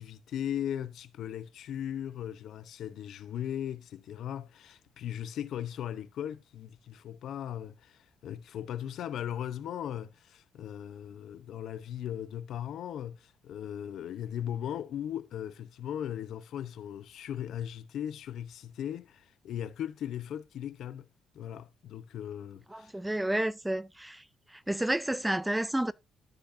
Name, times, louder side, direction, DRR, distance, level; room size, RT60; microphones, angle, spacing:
voice 1, 0.0-21.1 21.3-22.9, left 10 dB, 75° left, 0.7 m, -38 dB
voice 2, 22.7-24.2 24.7-25.9, right 1 dB, 10° right, 0.4 m, -30 dB
13.0 x 6.3 x 2.6 m
cardioid pair, 90°, 0 cm